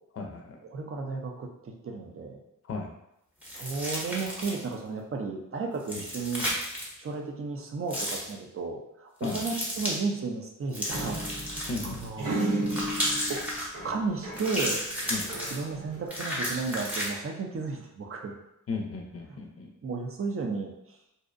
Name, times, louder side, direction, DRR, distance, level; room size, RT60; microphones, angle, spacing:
voice 1, 0.1-0.6 2.6-2.9 5.9-6.0 9.2-9.4 11.7-12.3 15.1-15.3 18.7-19.7, left 3 dB, 45° left, 2 dB, 0.5 m, -35 dB
voice 2, 0.7-2.4 3.5-6.5 7.0-11.7 11.9-12.4 13.3-13.4 13.8-14.8 15.5-18.4 19.8-20.7, right 4 dB, 45° right, 2 dB, 0.5 m, -33 dB
sound 1, 3.4-4.7 5.8-6.9 7.9-8.3 9.2-10.0 10.7-12.1 12.6-13.7 14.3-15.6 16.1-17.1, equal, 5° right, 0.7 m, -33 dB
sound 2, 10.9-14.6 14.9-16.1, right 1 dB, 75° right, 0.8 m, -34 dB
2.6 x 2.0 x 2.5 m, 0.83 s
cardioid pair, 70°, 32 cm